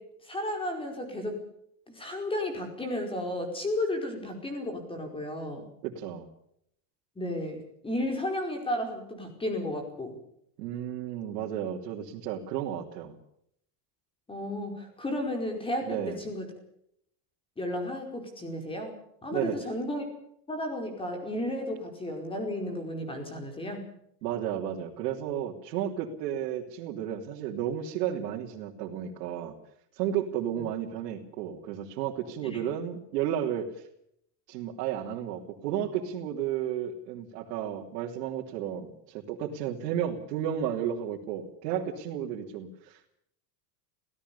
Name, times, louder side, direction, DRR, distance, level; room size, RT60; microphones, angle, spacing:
voice 1, 0.0-1.4 1.9-5.7 7.1-10.2 14.3-16.5 17.6-20.0 20.5-23.9 30.6-30.7 32.5-32.6, left 1 dB, 10° left, 4 dB, 4.9 m, -33 dB
voice 2, 5.8-6.3 10.6-13.1 15.8-16.2 19.3-19.6 24.2-29.5 29.9-33.8 34.5-43.1, right 10 dB, 85° right, -2 dB, 3.1 m, -33 dB
25.0 x 17.0 x 7.0 m, 0.72 s
cardioid pair, 165°, 47 cm